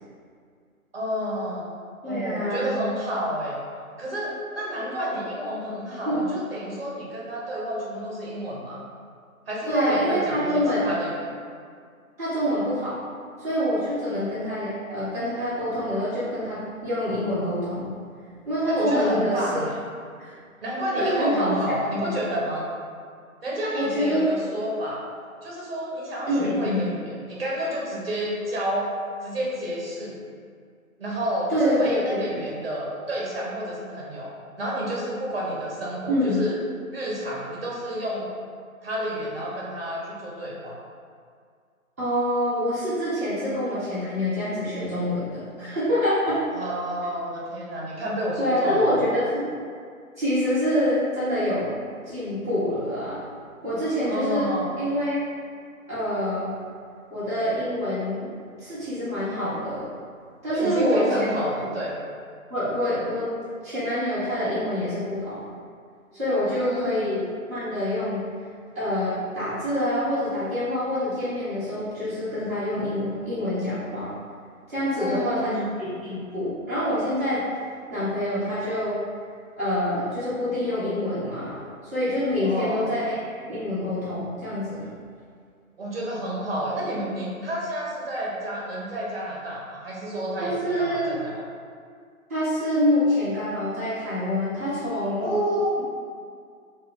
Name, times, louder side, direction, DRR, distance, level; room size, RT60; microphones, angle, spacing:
voice 1, 0.9-1.7 2.0-3.6 4.0-8.8 9.5-11.3 14.1-14.2 18.7-19.7 20.6-22.6 23.4-25.0 25.4-28.9 29.2-30.2 31.0-36.6 36.9-38.3 38.8-40.8 46.5-49.0 54.1-54.7 60.5-61.9 66.5-67.0 74.9-75.6 82.4-82.9 85.8-91.4 95.2-95.8, equal, 45° right, -4 dB, 0.8 m, -30 dB
voice 2, 2.0-2.7 6.0-6.3 9.7-10.9 12.2-13.0 13.4-17.9 18.5-19.6 20.2-20.3 21.0-21.5 21.9-22.1 23.7-24.3 26.3-26.9 31.5-32.4 36.1-36.4 42.0-46.4 48.4-49.5 50.2-51.7 52.1-53.2 53.6-54.5 54.8-55.2 55.9-56.5 57.1-58.2 58.6-59.9 60.4-61.3 62.5-63.3 63.6-65.4 66.1-67.2 67.5-68.2 68.7-74.1 74.7-77.4 77.9-79.0 79.6-81.6 81.9-83.2 83.5-84.8 90.4-91.2 92.3-95.3, equal, 10° right, -17 dB, 0.8 m, -26 dB
2.8 x 2.5 x 3.4 m, 2.1 s
figure-of-eight pair, 155°, 43 cm